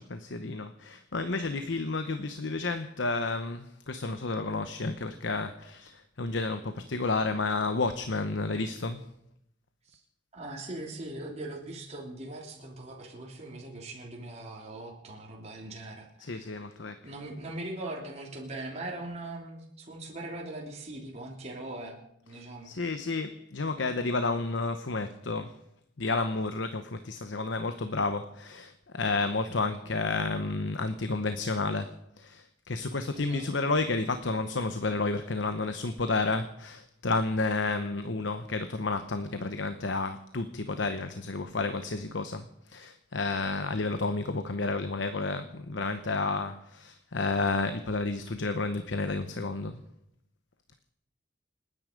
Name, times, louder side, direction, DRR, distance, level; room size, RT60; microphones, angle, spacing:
voice 1, 0.0-9.1 16.2-17.1 22.3-25.6 26.0-49.8, left 3 dB, 70° left, 9 dB, 0.9 m, -31 dB
voice 2, 10.3-16.5 17.0-22.7 33.1-33.5, right 2 dB, 35° right, -1 dB, 3.0 m, -40 dB
29.0 x 9.7 x 5.2 m, 0.78 s
head